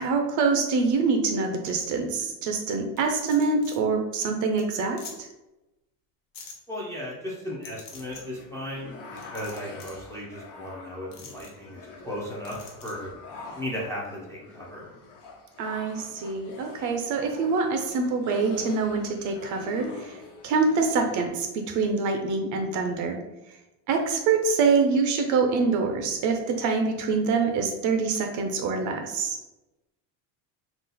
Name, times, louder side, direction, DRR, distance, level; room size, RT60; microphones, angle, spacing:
voice 1, 0.0-5.3 15.6-20.2 20.4-23.2 23.9-29.4, right 4 dB, 45° right, 5 dB, 0.5 m, -25 dB
sound 1, 3.0-3.8 4.2-4.3 4.6-4.7 5.0-5.1 6.3-6.5 7.6-8.2 9.2-10.0 11.1-11.5 12.4-12.9, left 5 dB, 50° left, 1.0 m, -44 dB
voice 2, 6.7-8.9 9.3-12.6 12.8-13.1 13.5-14.9, left 1 dB, 5° left, -5 dB, 0.5 m, -36 dB
sound 2, 7.9-21.3, left 3 dB, 75° left, 1.2 m, -45 dB
3.9 x 2.4 x 3.9 m, 0.98 s
cardioid pair, 160°, 42 cm